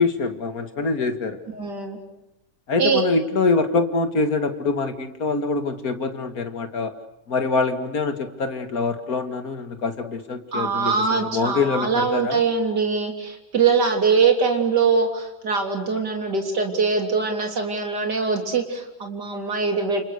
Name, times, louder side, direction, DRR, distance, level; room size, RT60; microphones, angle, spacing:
voice 1, 0.0-1.4 2.7-6.9 7.3-12.4, left 4 dB, 60° left, 8 dB, 2.5 m, -24 dB
voice 2, 1.5-2.0 2.8-3.0 10.5-20.0, right 5 dB, 85° right, 3 dB, 4.2 m, -22 dB
29.5 x 28.0 x 6.7 m, 0.89 s
omnidirectional pair, 1.8 m